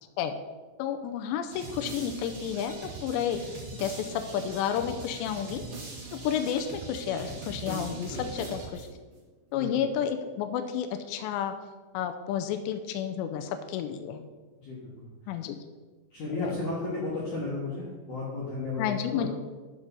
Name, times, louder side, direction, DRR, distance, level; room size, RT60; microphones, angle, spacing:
voice 1, 0.8-3.4 3.8-5.6 6.1-8.9 9.5-11.5 11.9-14.2 15.3-15.6 16.4-16.5 18.8-19.3, left 8 dB, 85° left, 6 dB, 2.6 m, -31 dB
sound 1, 1.5-9.1, right 3 dB, 50° right, 1.6 m, -41 dB
voice 2, 14.6-15.4 16.1-19.3, left 3 dB, 55° left, -7 dB, 2.4 m, -35 dB
12.5 x 6.1 x 4.1 m, 1.3 s
omnidirectional pair, 5.5 m